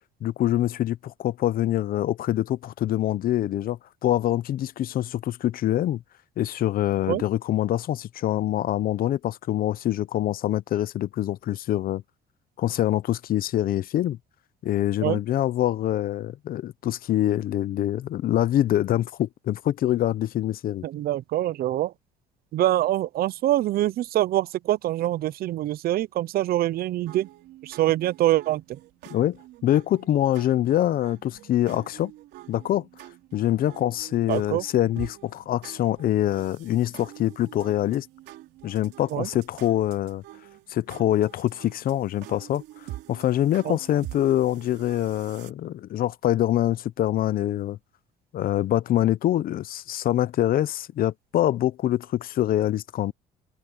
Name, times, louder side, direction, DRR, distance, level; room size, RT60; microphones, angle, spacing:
voice 1, 0.2-6.0 6.4-12.0 12.6-14.2 14.6-20.8 29.1-32.1 32.5-32.9 33.3-38.1 38.6-40.2 40.7-42.6 43.1-47.8 48.3-53.1, left 12 dB, 60° left, 0.8 m, -25 dB
voice 2, 20.8-21.9 22.5-27.3 27.6-28.6 34.3-34.6 39.1-39.3 43.7-43.8, right 14 dB, 65° right, 0.6 m, -24 dB
sound 1, 27.1-45.5, right 15 dB, 85° right, 3.3 m, -46 dB
cardioid pair, 110°, 17 cm